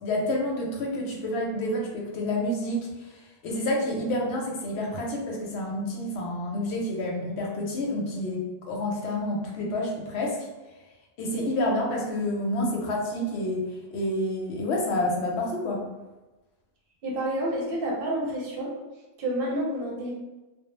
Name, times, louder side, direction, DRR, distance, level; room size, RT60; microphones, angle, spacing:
voice 1, 0.0-10.4 11.2-15.8, left 1 dB, 85° left, -1 dB, 0.9 m, -29 dB
voice 2, 17.0-18.7 19.2-20.1, right 1 dB, 65° right, -3 dB, 0.7 m, -29 dB
2.1 x 2.0 x 2.9 m, 1.1 s
omnidirectional pair, 1.1 m